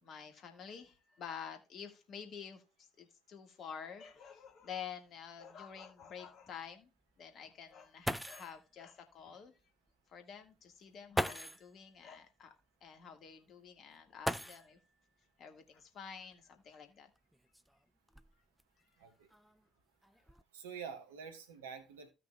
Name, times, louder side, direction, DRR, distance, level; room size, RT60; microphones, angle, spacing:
voice 1, 0.0-6.9 7.2-9.6 10.1-12.5 12.8-14.8 15.4-17.1 18.8-19.1, left 7 dB, 50° left, 1.6 m, -49 dB
sound 1, 4.1-4.2 4.6-4.7 5.4-5.5 7.7-7.8 8.0-8.6 9.9-10.0 11.1-11.7 14.2-14.9 16.3-16.4 17.1-18.6 19.3-19.7 20.0-20.4, equal, 5° right, 0.5 m, -39 dB
voice 2, 19.0-19.3 20.5-22.1, right 6 dB, 75° right, 1.2 m, -47 dB
15.5 x 5.9 x 2.2 m
figure-of-eight pair, 50°, 0 cm